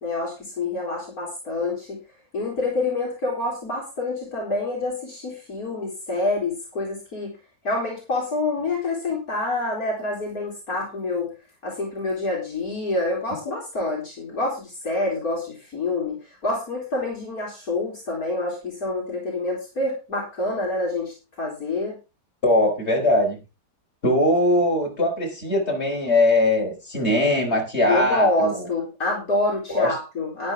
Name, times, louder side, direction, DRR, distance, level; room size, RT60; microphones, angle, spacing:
voice 1, 0.0-2.0 2.3-7.3 7.6-11.3 11.6-22.0 27.9-30.5, left 2 dB, 55° left, -2 dB, 3.9 m, -27 dB
voice 2, 22.4-23.4 24.0-28.6 29.7-29.9, left 1 dB, 35° left, 0 dB, 4.8 m, -21 dB
12.5 x 10.5 x 3.6 m, 0.30 s
omnidirectional pair, 1.8 m